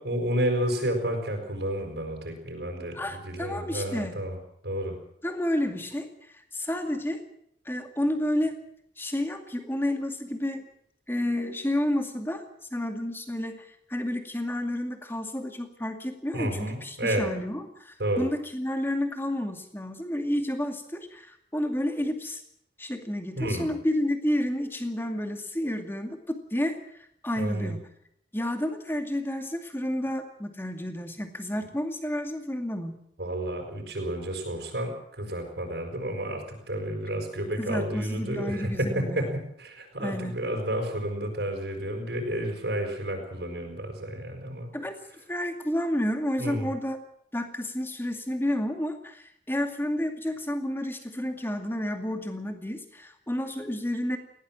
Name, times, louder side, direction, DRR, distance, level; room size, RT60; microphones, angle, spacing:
voice 1, 0.0-4.4 4.6-5.0 16.3-17.3 18.0-18.3 23.4-23.7 27.4-27.8 33.2-44.7 46.4-46.7, right 1 dB, 70° right, 2 dB, 5.6 m, -31 dB
voice 2, 2.9-4.2 5.2-6.1 6.5-7.2 7.7-8.5 9.0-10.6 11.1-12.4 12.7-22.4 22.8-26.8 27.2-27.8 28.3-33.0 37.6-39.3 40.0-40.3 44.7-44.9 45.3-47.0 47.3-54.2, left 1 dB, 15° left, 5 dB, 2.4 m, -30 dB
20.0 x 17.0 x 7.6 m, 0.70 s
head